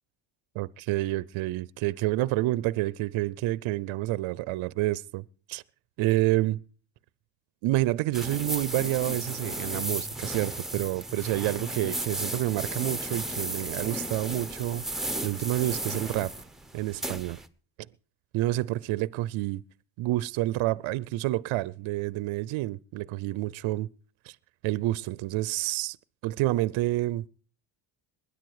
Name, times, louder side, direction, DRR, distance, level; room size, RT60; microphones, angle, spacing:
voice 1, 0.5-5.6 6.0-6.6 7.6-14.8 15.2-16.3 16.7-17.4 18.3-19.6 20.0-23.9 24.2-24.4 24.6-26.0 26.2-27.3, right 17 dB, 70° right, 0.6 m, -28 dB
sound 1, 8.1-17.5, right 1 dB, ahead, 0.9 m, -34 dB
20.5 x 10.0 x 4.8 m
cardioid pair, 105°, 49 cm